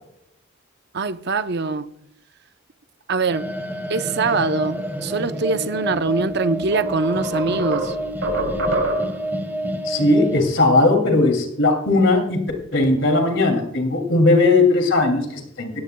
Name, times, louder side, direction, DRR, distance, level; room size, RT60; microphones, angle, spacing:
voice 1, 0.9-1.9 3.1-3.5 3.9-8.0, right 4 dB, 50° right, 0.7 m, -23 dB
sound 1, 3.3-10.4, equal, 10° right, 1.7 m, -28 dB
sound 2, 6.1-6.2 6.7-9.3, right 2 dB, 75° right, 3.2 m, -26 dB
voice 2, 9.8-12.4 12.7-15.8, left 2 dB, 60° left, 2.6 m, -18 dB
18.5 x 15.5 x 2.2 m
head